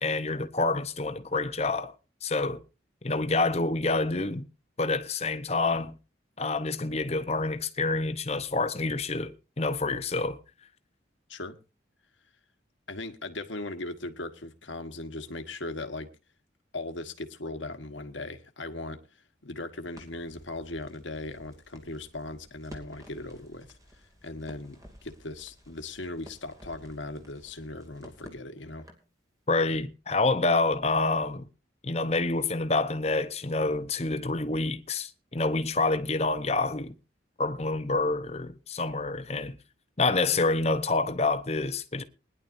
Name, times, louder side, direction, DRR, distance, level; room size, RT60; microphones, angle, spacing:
voice 1, 0.0-1.9 2.2-2.6 3.0-4.5 4.8-5.9 6.4-10.4 29.5-31.5 31.8-36.9 37.4-39.6 40.0-42.0, left 3 dB, 35° left, 0.9 m, -27 dB
voice 2, 12.9-16.1 16.7-19.0 19.4-23.7 24.2-28.8, left 2 dB, 75° left, 1.4 m, -38 dB
Crackle, 19.9-29.1, equal, 20° right, 2.6 m, -53 dB
21.0 x 10.5 x 2.7 m
head